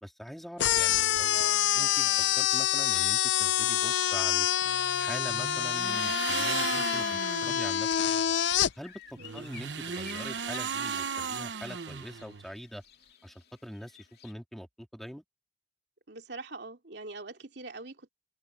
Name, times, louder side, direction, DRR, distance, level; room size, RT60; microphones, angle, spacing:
voice 1, 0.0-4.5 5.0-8.3 8.8-12.8 13.2-15.2, equal, ahead, 3.7 m, -43 dB
sound 1, 0.6-8.7, left 11 dB, 85° left, 0.5 m, -27 dB
sound 2, 4.6-7.7 9.2-12.5, right 6 dB, 80° right, 1.1 m, -36 dB
sound 3, 6.8-14.3, left 8 dB, 60° left, 2.6 m, -54 dB
voice 2, 16.1-18.1, right 3 dB, 65° right, 2.8 m, -43 dB
open air
head